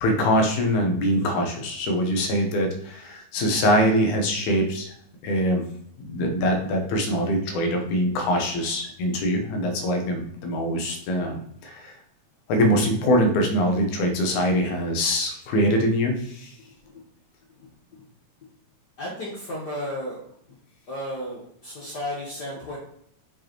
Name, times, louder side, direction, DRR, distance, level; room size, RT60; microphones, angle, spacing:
voice 1, 0.0-4.9 5.2-5.6 6.1-11.4 11.6-11.9 12.5-16.5, equal, 85° left, 3 dB, 2.5 m, -23 dB
voice 2, 17.6-18.0 19.0-20.2 20.9-22.8, left 1 dB, 50° left, -4 dB, 1.3 m, -34 dB
6.9 x 4.8 x 3.0 m, 0.69 s
omnidirectional pair, 3.3 m